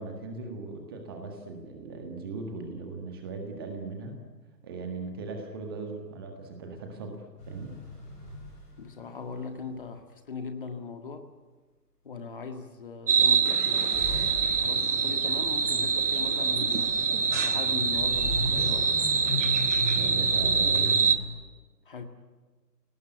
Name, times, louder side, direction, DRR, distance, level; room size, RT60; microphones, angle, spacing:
voice 1, 0.0-4.2 4.6-7.7 20.0-21.1, right 3 dB, 15° right, 3 dB, 1.6 m, -38 dB
sound 1, 7.4-9.7 13.4-21.2, left 1 dB, 15° left, 5.7 m, -37 dB
voice 2, 8.8-11.3 12.0-17.0 17.4-18.9 21.9-22.0, left 5 dB, 30° left, 6 dB, 1.9 m, -39 dB
sound 2, 13.1-21.2, right 5 dB, 45° right, 1.4 m, -25 dB
29.0 x 18.5 x 9.2 m, 1.3 s
figure-of-eight pair, 145°, 49 cm